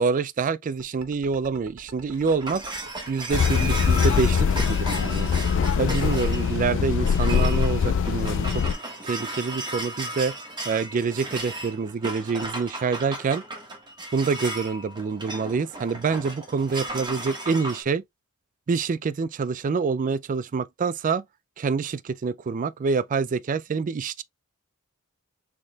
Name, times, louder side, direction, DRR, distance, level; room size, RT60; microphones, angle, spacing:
voice 1, 0.0-2.6 3.1-5.3 5.8-8.6 9.0-10.3 10.6-13.4 14.1-18.0 18.7-21.2 21.6-24.2, right 5 dB, 35° right, 0.3 m, -26 dB
sound 1, 0.8-7.7, right 4 dB, 70° right, 0.9 m, -45 dB
sound 2, 1.8-17.8, right 2 dB, 20° right, 1.5 m, -35 dB
sound 3, 3.3-8.7, left 6 dB, 60° left, 0.4 m, -23 dB
6.4 x 3.5 x 2.3 m
head